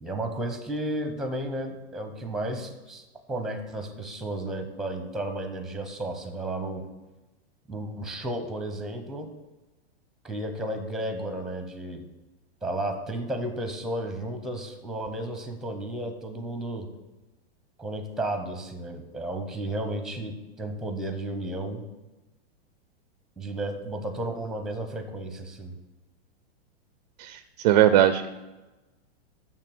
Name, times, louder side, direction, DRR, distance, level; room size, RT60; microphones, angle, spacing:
voice 1, 0.0-6.8 7.7-9.3 10.2-12.0 12.6-16.9 17.8-21.8 23.4-25.7, right 1 dB, ahead, 7 dB, 0.6 m, -33 dB
voice 2, 27.2-28.3, right 11 dB, 40° right, 11 dB, 0.4 m, -20 dB
6.9 x 5.9 x 6.9 m, 1.1 s
hypercardioid pair, 145°, 33 cm